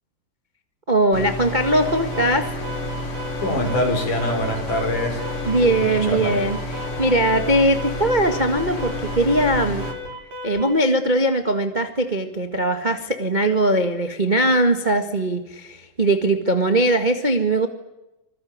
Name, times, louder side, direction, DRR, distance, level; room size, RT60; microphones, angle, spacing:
voice 1, 0.9-2.5 5.4-9.9 10.4-17.7, right 1 dB, 20° right, 7 dB, 1.2 m, -20 dB
sound 1, 1.1-9.9, left 1 dB, 40° left, 4.6 m, -30 dB
Alarm, 1.6-10.8, left 2 dB, 80° right, 7.1 m, -35 dB
voice 2, 3.4-5.2 5.6-6.4, left 1 dB, 65° left, 4 dB, 7.1 m, -24 dB
26.0 x 21.5 x 9.6 m, 0.94 s
omnidirectional pair, 3.9 m